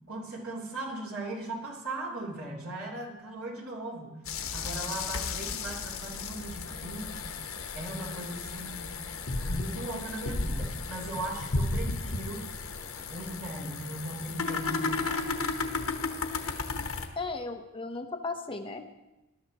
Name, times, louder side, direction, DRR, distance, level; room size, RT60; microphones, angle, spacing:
voice 1, 0.1-7.2 7.7-9.0 9.4-12.4 13.1-15.9, right 2 dB, 80° right, -3 dB, 3.3 m, -38 dB
sound 1, 4.2-17.1, left 3 dB, 70° left, 1.2 m, -34 dB
voice 2, 17.2-19.0, left 3 dB, 25° left, 5 dB, 0.9 m, -36 dB
20.0 x 12.0 x 3.0 m, 1.0 s
head